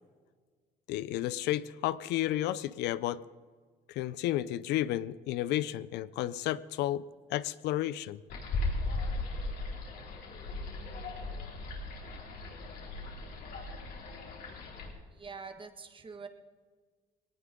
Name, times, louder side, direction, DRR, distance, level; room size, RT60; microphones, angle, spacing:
voice 1, 0.9-3.2 3.9-7.0 7.3-8.2, left 14 dB, 85° left, 17 dB, 0.6 m, -32 dB
sound 1, 8.3-14.9, left 2 dB, 70° left, 4.6 m, -37 dB
voice 2, 15.1-16.3, right 5 dB, 30° right, 7 dB, 1.7 m, -45 dB
19.5 x 18.5 x 3.8 m, 1.5 s
cardioid pair, 110°, 17 cm